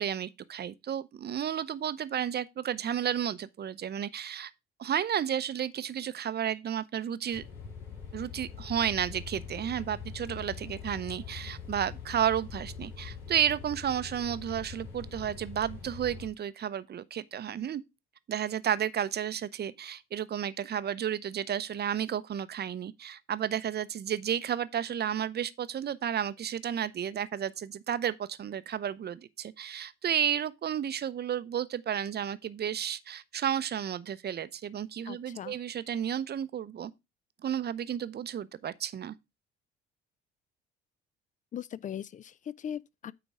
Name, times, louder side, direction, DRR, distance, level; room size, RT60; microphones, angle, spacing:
voice 1, 0.0-4.5 4.8-7.4 8.1-17.8 18.3-36.9 37.4-39.1, right 9 dB, 30° right, 0.6 m, -32 dB
sound 1, 7.3-16.3, left 6 dB, 65° left, 3.1 m, -43 dB
voice 2, 35.1-35.6 41.5-43.1, left 9 dB, 25° left, 0.4 m, -39 dB
9.0 x 3.9 x 4.8 m
figure-of-eight pair, 50°, 31 cm